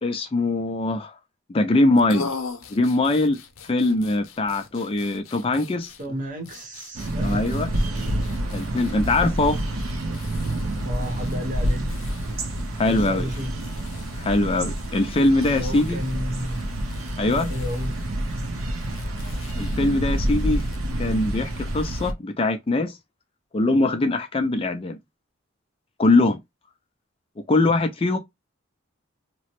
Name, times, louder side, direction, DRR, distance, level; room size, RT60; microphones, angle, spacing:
voice 1, 0.0-1.2 1.5-2.3 2.7-3.4 3.7-5.9 7.2-7.7 8.5-9.6 12.8-13.3 14.2-16.0 17.2-17.5 19.6-20.6 21.0-23.0 23.5-25.0 26.0-26.4 27.5-28.2, left 2 dB, 25° left, 0.3 m, -22 dB
sound 1, 1.9-20.8, left 4 dB, 85° left, 0.7 m, -43 dB
voice 2, 6.0-7.4 10.8-12.0 12.9-13.5 15.5-16.7 17.3-18.0, equal, 40° right, 0.8 m, -32 dB
sound 2, 6.9-22.1, right 1 dB, 90° right, 0.7 m, -28 dB
2.9 x 2.1 x 2.8 m
head